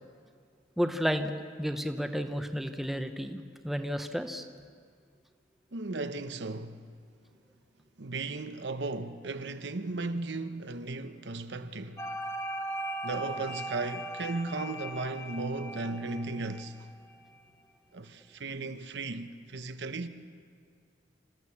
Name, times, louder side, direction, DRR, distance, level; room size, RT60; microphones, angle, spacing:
voice 1, 0.8-1.3 1.6-4.5, equal, ahead, 0.9 m, -32 dB
voice 2, 5.7-6.8 8.0-12.0 13.0-16.9 17.9-20.1, right 3 dB, 65° right, 1.0 m, -36 dB
chime chords, 12.0-17.1, right 1 dB, 15° left, 1.4 m, -39 dB
27.0 x 15.0 x 7.2 m
head